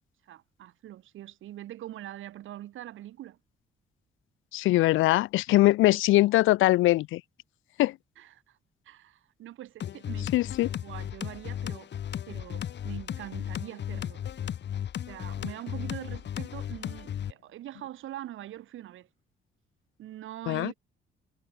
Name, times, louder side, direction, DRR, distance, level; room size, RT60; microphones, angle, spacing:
voice 1, 0.3-3.4 8.2-8.6 8.9-10.4 10.7-11.9 12.3-14.3 15.1-19.1 20.0-20.7, right 13 dB, 80° right, 7.2 m, -43 dB
voice 2, 4.5-7.2 7.8-8.0 10.3-10.7 20.5-20.7, left 17 dB, 90° left, 0.7 m, -22 dB
sound 1, 9.8-17.3, left 10 dB, 60° left, 2.8 m, -35 dB
cardioid pair, 90°, 20 cm